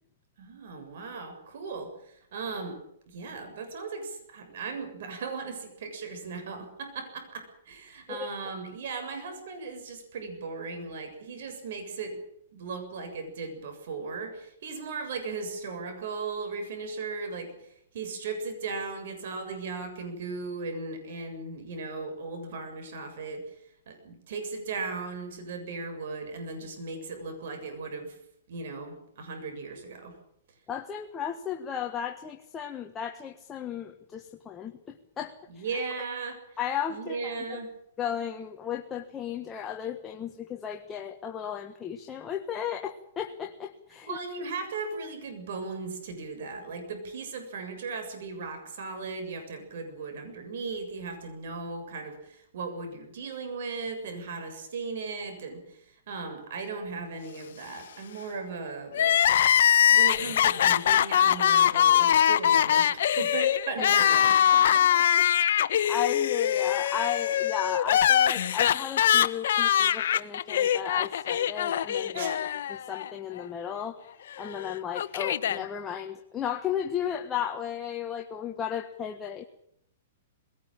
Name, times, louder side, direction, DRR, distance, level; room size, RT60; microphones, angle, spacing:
voice 1, 0.4-2.8 3.1-12.2 12.5-17.5 17.9-23.5 23.9-28.1 28.5-30.1 35.5-36.4 36.9-37.7 44.0-59.2 59.9-65.1 72.1-72.4, right 4 dB, 65° right, 7 dB, 7.3 m, -37 dB
voice 2, 30.7-35.6 36.6-37.6 38.0-44.2 64.6-64.7 65.8-74.0 74.4-79.4, left 9 dB, 15° left, 3 dB, 1.5 m, -35 dB
Crying sobbing, 58.9-73.1 73.4-73.5 74.4-75.6, left 10 dB, 65° left, 1.0 m, -23 dB
21.0 x 18.5 x 9.0 m, 0.72 s
hypercardioid pair, 145°, 0 cm